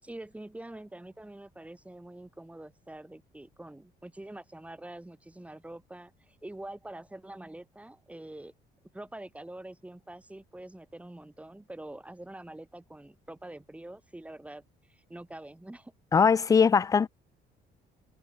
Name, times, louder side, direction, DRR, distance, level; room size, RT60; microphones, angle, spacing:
voice 1, 0.0-8.5 8.9-14.6 14.9-15.9, right 1 dB, 10° right, 6.2 m, -45 dB
voice 2, 16.1-17.1, left 6 dB, 20° left, 0.3 m, -21 dB
cardioid pair, 110°, 17 cm